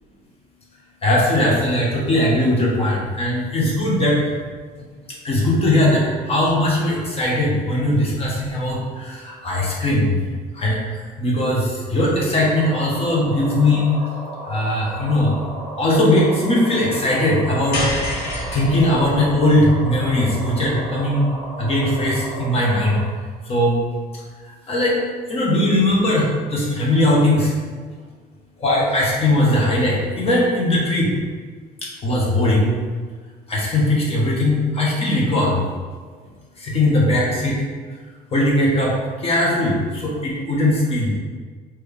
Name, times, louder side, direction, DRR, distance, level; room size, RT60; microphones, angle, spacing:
voice 1, 1.0-4.2 5.2-6.0 6.3-8.8 9.4-10.1 10.6-10.8 11.2-11.6 11.9-13.9 14.5-15.3 15.8-17.8 18.5-21.3 21.6-22.9 23.5-23.8 24.7-25.0 25.3-26.2 26.5-27.5 28.6-31.1 32.0-32.7 33.5-35.5 36.7-37.6 38.3-38.9 39.2-41.1, left 1 dB, 35° left, -4 dB, 1.3 m, -19 dB
sound 1, 12.4-23.0, right 1 dB, ahead, 1.0 m, -35 dB
sound 2, 17.7-22.1, left 1 dB, 80° left, 1.4 m, -30 dB
4.4 x 3.0 x 3.4 m, 1.5 s
cardioid pair, 110°, 17 cm